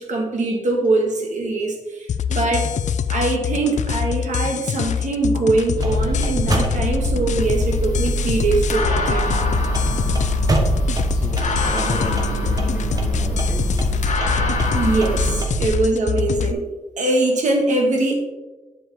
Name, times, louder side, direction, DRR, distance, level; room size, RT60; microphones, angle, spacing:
voice 1, 0.0-2.7 3.1-9.3 14.7-16.6 17.0-18.1, right 2 dB, 80° right, 1 dB, 1.7 m, -22 dB
sound 1, 2.1-16.5, left 8 dB, 70° left, 0.4 m, -24 dB
sound 2, 5.8-15.7, right 2 dB, 30° right, 1.1 m, -24 dB
sound 3, 7.4-15.4, left 4 dB, 90° left, 1.4 m, -29 dB
voice 2, 9.9-10.3 11.1-14.5 15.8-15.9, equal, 10° right, -1 dB, 1.9 m, -36 dB
8.5 x 7.4 x 3.6 m, 1.1 s
wide cardioid pair, 170°, 13 cm